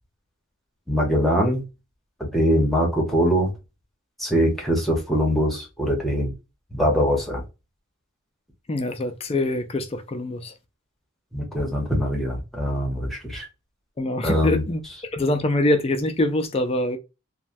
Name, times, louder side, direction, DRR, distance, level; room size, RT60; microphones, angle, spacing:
voice 1, 0.9-1.6 2.2-3.5 4.2-6.3 6.7-7.4 11.3-13.5 14.2-14.6, equal, ahead, 0.9 m, -22 dB
voice 2, 8.7-10.5 14.0-14.8 15.1-17.0, left 1 dB, 30° left, 0.4 m, -24 dB
3.1 x 2.2 x 2.6 m
head